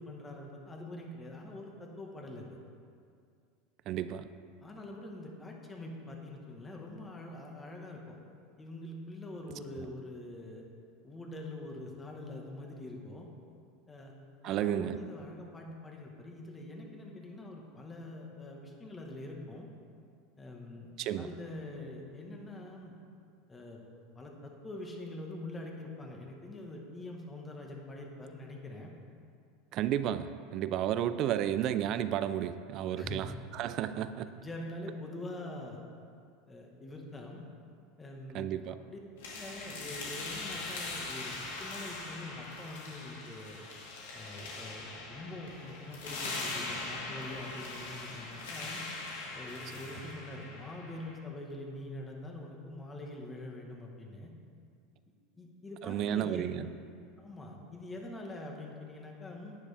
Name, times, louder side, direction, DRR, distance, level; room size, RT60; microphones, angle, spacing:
voice 1, 0.0-2.6 4.6-8.2 8.6-10.6 11.0-13.3 13.9-14.1 14.4-19.7 20.4-20.9 21.2-22.9 23.5-23.8 24.1-28.9 33.0-33.3 33.9-35.8 36.5-37.4 38.0-38.5 38.9-39.0 39.3-43.6 44.1-48.8 49.3-54.3 55.4-56.4 57.2-59.6, left 1 dB, 15° left, 0 dB, 1.6 m, -44 dB
voice 2, 3.9-4.3 14.4-15.0 21.0-21.3 29.7-34.3 38.3-38.8 55.8-56.7, right 11 dB, 45° right, 12 dB, 0.5 m, -32 dB
sound 1, 39.2-51.1, left 3 dB, 90° left, 2.3 m, -41 dB
11.0 x 9.7 x 3.5 m, 2.3 s
supercardioid pair, 125°, 0 cm